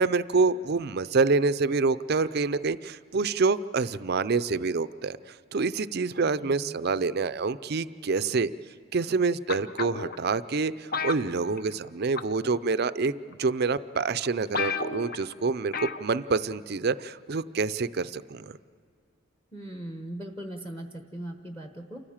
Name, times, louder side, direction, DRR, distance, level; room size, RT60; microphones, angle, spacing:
voice 1, 0.0-5.2 5.5-8.5 8.9-15.7 16.0-18.5, right 4 dB, 50° right, 15 dB, 0.5 m, -27 dB
voice 2, 6.4-6.8 19.5-22.0, right 1 dB, 10° left, 4 dB, 1.0 m, -39 dB
sound 1, 9.5-10.2 10.9-11.9 12.2-12.5 13.3-13.4 13.9-14.0 14.2-14.3 14.5-15.2 15.7-16.1 16.4-16.5, left 5 dB, 45° left, 0.8 m, -32 dB
28.5 x 15.0 x 7.3 m, 2.3 s
head